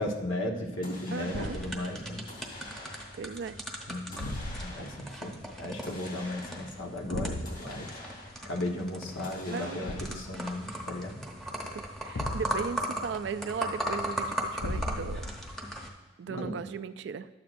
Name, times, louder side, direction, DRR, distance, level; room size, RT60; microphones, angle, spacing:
voice 1, 0.0-2.2 3.9-4.3 4.6-7.9 8.4-11.2 16.3-16.5, left 1 dB, 90° left, 0 dB, 1.2 m, -35 dB
sound 1, 0.8-1.8 2.3-3.3 4.1-5.2 5.8-6.9 7.5-8.5 9.2-10.3, left 2 dB, 50° left, 2.7 m, -47 dB
voice 2, 1.1-1.6 3.2-3.6 9.4-9.8 11.4-11.5 12.0-15.3 16.2-17.3, right 6 dB, 65° right, 13 dB, 0.3 m, -36 dB
Thump thud, 1.3-1.8 4.1-4.9 7.1-7.6 9.8-10.3 12.1-12.8 14.6-15.5, left 1 dB, 65° left, 0.7 m, -36 dB
sound 2, 1.3-15.9, right 1 dB, ahead, 0.8 m, -38 dB
12.5 x 8.5 x 2.6 m, 1.2 s
head